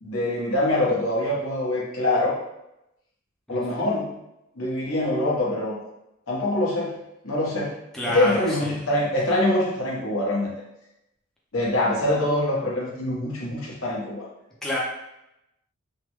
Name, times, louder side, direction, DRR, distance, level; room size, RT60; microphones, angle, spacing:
voice 1, 0.0-2.3 3.5-4.1 4.6-5.8 6.3-7.0 7.2-7.8 8.1-10.5 11.5-14.2, left 1 dB, 70° left, -4 dB, 0.9 m, -24 dB
voice 2, 3.5-3.9 7.9-8.8 14.6-14.8, left 1 dB, ahead, -6 dB, 0.5 m, -29 dB
3.2 x 2.1 x 3.0 m, 0.87 s
head